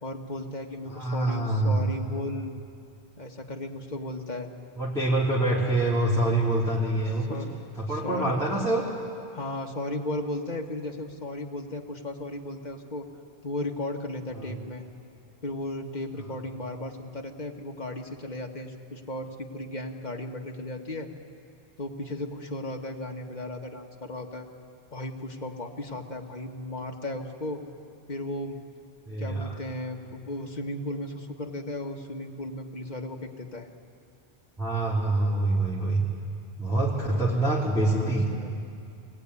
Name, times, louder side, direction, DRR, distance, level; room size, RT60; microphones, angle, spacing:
voice 1, 0.0-2.5 3.2-4.5 7.3-7.5 7.9-8.3 9.3-13.1 13.4-14.8 15.4-21.1 21.8-24.5 24.9-27.6 28.1-28.6 29.2-33.7 36.9-37.2 37.8-38.5, left 1 dB, 40° left, 2 dB, 1.8 m, -35 dB
voice 2, 0.9-1.8 4.8-7.4 7.8-8.9 14.4-14.6 29.1-29.5 34.6-36.0 36.6-38.2, right 2 dB, 5° left, -7 dB, 3.2 m, -25 dB
23.0 x 19.5 x 9.7 m, 2.5 s
omnidirectional pair, 1.1 m